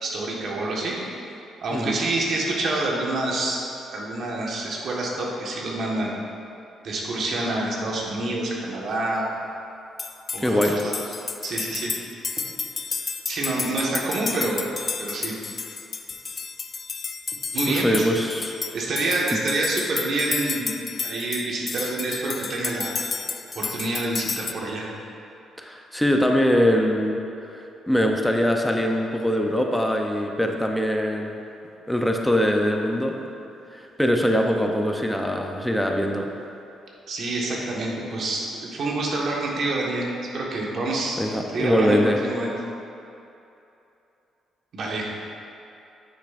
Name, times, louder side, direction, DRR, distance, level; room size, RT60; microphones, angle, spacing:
voice 1, 0.0-1.0 1.6-3.6 3.9-6.1 6.8-9.3 10.3-10.9 11.4-11.9 13.3-14.6 15.0-15.3 17.5-18.1 18.7-20.7 21.0-22.9 23.5-24.9 37.1-40.1 40.3-41.2 41.5-42.0 42.2-42.5 44.7-45.1, right 2 dB, 60° right, -3 dB, 1.5 m, -27 dB
sound 1, 10.0-24.5, left 5 dB, 40° left, 0.3 m, -31 dB
voice 2, 10.4-10.8 17.7-18.5 19.3-19.4 25.6-27.2 27.5-31.4 31.9-33.2 33.7-36.3 41.2-42.2, equal, 5° left, 2 dB, 0.7 m, -22 dB
10.0 x 6.6 x 2.6 m, 2.8 s
cardioid pair, 90°, 0 cm